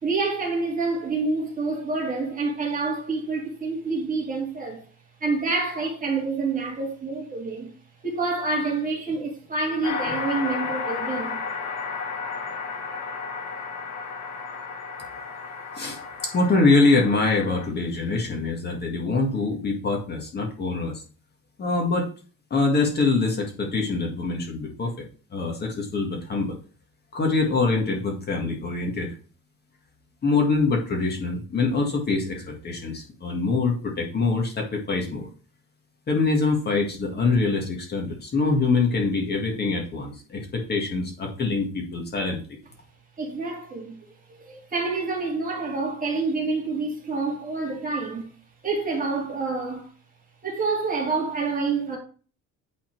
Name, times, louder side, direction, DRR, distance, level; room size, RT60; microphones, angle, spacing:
voice 1, 0.0-4.8 5.2-7.7 8.0-11.4 43.2-44.0 44.3-48.3 48.6-49.9 50.4-52.0, right 3 dB, 25° right, 2.3 m, -27 dB
sound 1, 9.8-17.7, left 5 dB, 55° left, 1.8 m, -33 dB
voice 2, 15.7-21.0 21.6-22.1 22.5-25.0 25.3-26.6 27.1-29.1 30.2-35.3 36.1-42.4, left 3 dB, 30° left, 1.8 m, -24 dB
9.1 x 4.3 x 4.5 m
cardioid pair, 155°, 32 cm